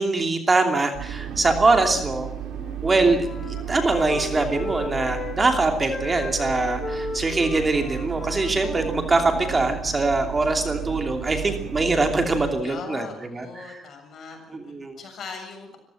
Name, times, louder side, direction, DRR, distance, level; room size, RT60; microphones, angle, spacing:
voice 1, 0.0-2.3 2.8-13.1 13.3-13.8 14.5-15.0, right 3 dB, 25° right, 5 dB, 2.8 m, -23 dB
sound 1, 0.9-12.6, right 9 dB, 85° right, 3.6 m, -34 dB
Wind instrument woodwind instrument, 2.5-5.6 5.9-9.7, left 4 dB, 35° left, 2.6 m, -36 dB
voice 2, 12.6-15.8, left 5 dB, 55° left, 5 dB, 7.3 m, -40 dB
25.5 x 15.0 x 7.8 m, 0.75 s
cardioid pair, 120°, 0 cm